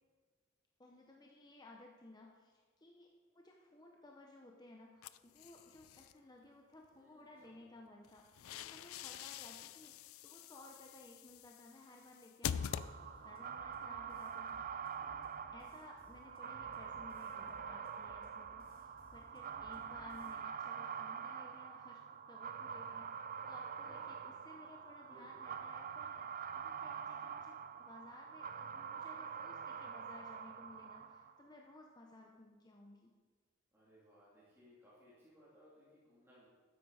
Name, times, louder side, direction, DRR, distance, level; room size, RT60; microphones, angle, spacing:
voice 1, 0.8-22.0 22.3-23.1 23.4-26.2 26.6-33.1, left 2 dB, 20° left, 0 dB, 0.8 m, -58 dB
sound 1, 5.0-6.1 8.0-13.4, left 8 dB, 85° left, 0.4 m, -45 dB
voice 2, 6.9-7.9 8.3-8.8 23.8-24.8 25.1-25.5 33.7-36.5, equal, 10° right, -9 dB, 2.9 m, -65 dB
sound 2, 12.6-31.5, right 7 dB, 40° right, 0.5 m, -46 dB
sound 3, 13.1-20.4, equal, 45° left, 2.3 m, -64 dB
13.0 x 9.4 x 4.9 m, 1.5 s
head